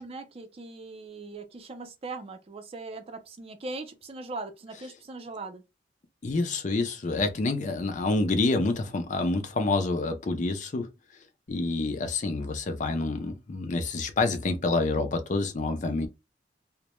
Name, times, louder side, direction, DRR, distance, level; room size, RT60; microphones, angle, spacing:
voice 1, 0.0-5.6, right 3 dB, 35° right, 0.5 m, -40 dB
voice 2, 6.2-10.9 11.5-16.1, left 3 dB, 45° left, 0.4 m, -27 dB
2.1 x 2.1 x 2.9 m
head